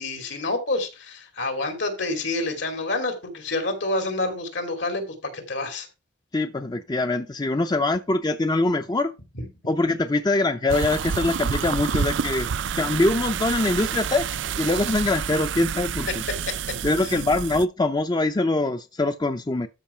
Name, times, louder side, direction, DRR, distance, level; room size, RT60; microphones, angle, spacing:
voice 1, 0.0-5.0 5.3-5.9 9.3-9.5 17.0-17.1, left 2 dB, 75° left, 2.8 m, -28 dB
voice 2, 6.3-9.1 9.7-12.5 12.7-14.3 14.6-16.2 16.8-19.7, left 2 dB, 20° left, 0.5 m, -23 dB
sound 1, 10.7-17.6, right 7 dB, 75° right, 0.4 m, -29 dB
13.0 x 5.7 x 4.4 m
head